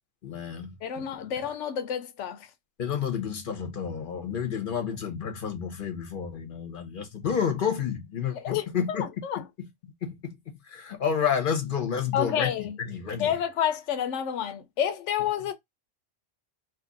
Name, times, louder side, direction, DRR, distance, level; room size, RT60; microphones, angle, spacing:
voice 1, 0.2-1.3 2.8-9.1 9.4-9.5 10.0-10.3 10.7-12.5 12.8-13.3, left 7 dB, 50° left, 0.9 m, -30 dB
voice 2, 0.8-2.5 8.3-9.4 12.1-12.8 13.2-15.5, left 9 dB, 80° left, 1.0 m, -29 dB
2.8 x 2.5 x 3.8 m
omnidirectional pair, 1.2 m